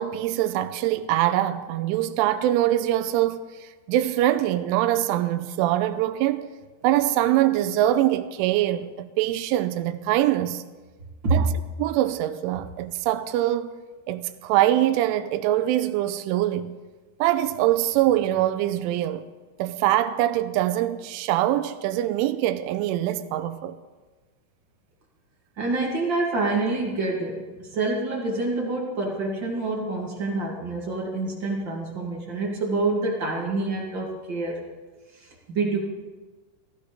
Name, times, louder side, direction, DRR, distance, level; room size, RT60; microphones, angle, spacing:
voice 1, 0.0-6.5 6.8-10.6 11.3-11.5 11.8-13.8 14.1-16.7 17.2-19.2 19.6-23.8, right 13 dB, 85° right, 3.1 m, -23 dB
voice 2, 25.6-34.6 35.2-35.8, right 3 dB, 40° right, 1.7 m, -27 dB
17.0 x 15.0 x 5.1 m
omnidirectional pair, 5.7 m